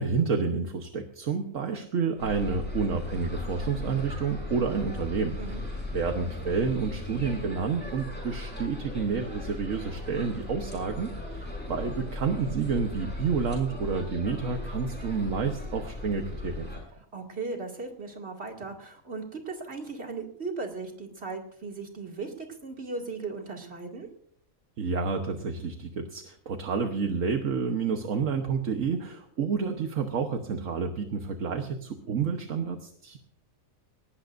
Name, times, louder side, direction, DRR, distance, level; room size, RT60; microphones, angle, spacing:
voice 1, 0.0-5.6 5.9-16.7 24.8-33.2, right 5 dB, 70° right, 4 dB, 1.5 m, -29 dB
sound 1, 2.2-16.8, left 2 dB, 5° left, 6.3 m, -37 dB
voice 2, 17.1-24.1, right 3 dB, 50° right, 1 dB, 2.7 m, -37 dB
19.5 x 19.0 x 2.6 m, 0.65 s
omnidirectional pair, 1.4 m